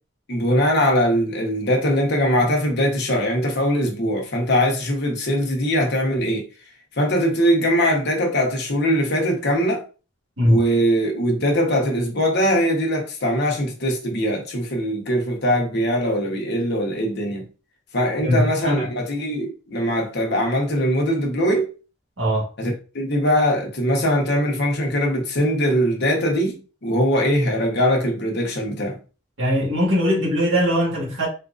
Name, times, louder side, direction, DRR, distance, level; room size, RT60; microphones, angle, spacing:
voice 1, 0.3-6.5 7.0-9.8 10.4-17.5 17.9-21.7 22.6-29.0, equal, 60° left, 1.0 m, -21 dB
voice 2, 18.2-18.9 22.2-22.5 29.4-31.3, equal, 80° right, 1.7 m, -20 dB
4.2 x 2.5 x 2.5 m
head